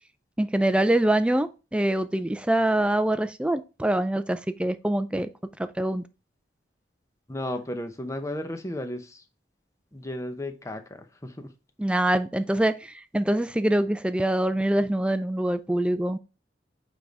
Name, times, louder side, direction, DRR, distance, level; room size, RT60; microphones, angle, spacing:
voice 1, 0.4-5.3 5.6-6.0 11.8-16.2, right 1 dB, 5° right, 0.4 m, -24 dB
voice 2, 7.3-9.2 9.9-11.5, left 1 dB, 15° left, 0.7 m, -34 dB
8.8 x 3.5 x 4.0 m
head